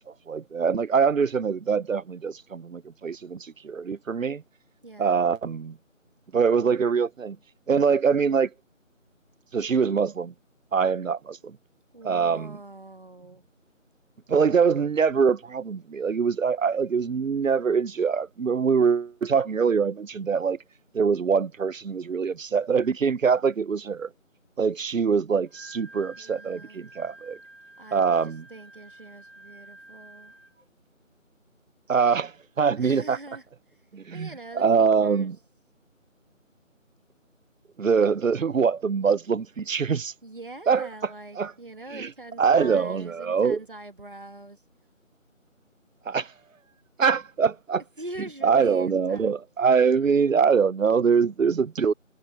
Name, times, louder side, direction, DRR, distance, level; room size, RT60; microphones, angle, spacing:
voice 1, 0.1-4.4 5.0-5.8 6.3-7.4 7.7-8.5 9.5-10.3 10.7-11.6 12.0-12.6 14.3-20.6 20.9-24.1 24.6-27.4 27.9-28.4 31.9-33.2 33.9-34.3 34.5-35.4 37.8-40.1 40.7-40.9 41.4-41.5 41.9-42.1 42.4-43.6 46.1-46.3 47.0-47.8 48.4-51.9, right 6 dB, 75° right, 0.6 m, -23 dB
voice 2, 4.8-5.3 11.9-13.4 26.2-26.8 27.8-30.3 32.8-33.8 34.1-35.4 40.2-44.6 48.0-49.4, right 2 dB, 40° right, 1.8 m, -43 dB
Wind instrument woodwind instrument, 25.3-30.7, right 2 dB, 65° left, 2.9 m, -50 dB
figure-of-eight pair, 170°, 40 cm